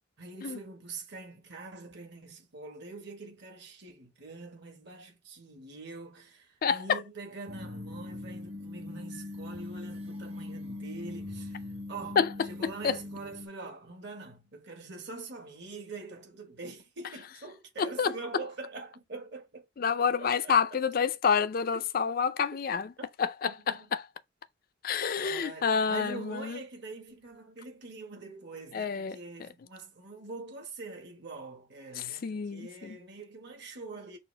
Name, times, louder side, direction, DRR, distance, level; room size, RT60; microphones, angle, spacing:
voice 1, 0.2-12.2 12.5-19.7 20.2-20.6 21.7-21.8 23.2-23.9 25.2-34.2, right 3 dB, 55° right, 1.5 m, -44 dB
voice 2, 6.6-7.0 12.2-12.3 12.6-13.0 17.8-18.2 19.8-22.9 23.2-24.0 24.8-26.6 28.7-29.2 32.0-33.0, left 6 dB, 45° left, 0.4 m, -28 dB
sound 1, 7.5-13.5, left 2 dB, 30° right, 0.9 m, -41 dB
6.1 x 2.4 x 3.3 m
head